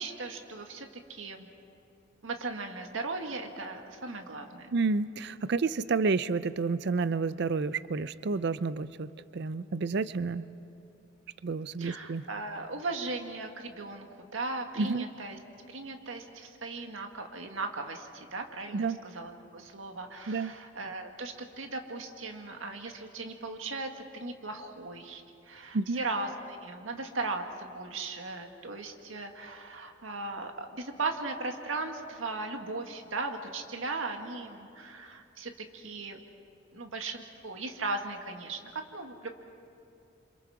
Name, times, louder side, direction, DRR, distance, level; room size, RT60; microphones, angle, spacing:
voice 1, 0.0-1.5 2.2-4.7 11.8-14.1 14.3-15.4 15.7-36.2 36.7-39.3, right 3 dB, 85° right, 4 dB, 1.8 m, -37 dB
voice 2, 4.7-10.5 11.4-12.2 14.8-15.1 18.7-19.0 20.3-20.5 25.7-26.0, right 4 dB, 60° right, 15 dB, 0.5 m, -30 dB
28.5 x 26.5 x 4.9 m, 2.6 s
head